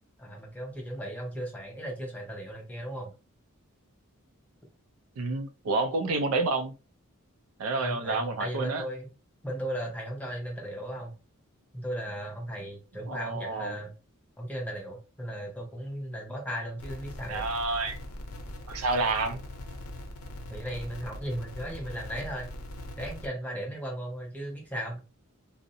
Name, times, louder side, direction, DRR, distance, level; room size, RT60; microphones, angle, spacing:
voice 1, 0.2-3.1 7.8-9.1 9.4-11.1 11.7-13.9 14.4-17.5 20.5-22.5 23.0-25.0, equal, 5° left, 0.7 m, -36 dB
voice 2, 5.2-6.7 7.6-8.8 13.1-13.8 17.3-18.0 18.7-19.4, right 3 dB, 70° right, 0.4 m, -29 dB
sound 1, 16.8-23.3, left 1 dB, 75° left, 0.5 m, -41 dB
2.5 x 2.0 x 2.6 m
head